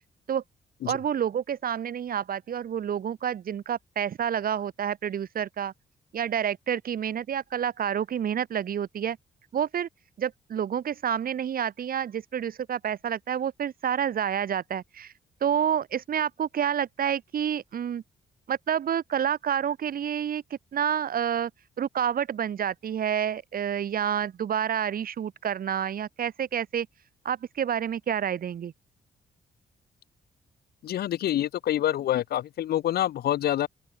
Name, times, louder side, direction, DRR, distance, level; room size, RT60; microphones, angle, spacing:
voice 1, 0.8-5.7 6.1-9.2 9.5-9.9 10.2-15.1 15.4-18.0 18.5-20.4 20.7-21.5 21.8-26.9 27.2-28.7, right 9 dB, 65° right, 2.4 m, -28 dB
voice 2, 30.8-33.7, left 12 dB, 80° left, 2.2 m, -26 dB
open air
supercardioid pair, 60°, 16 cm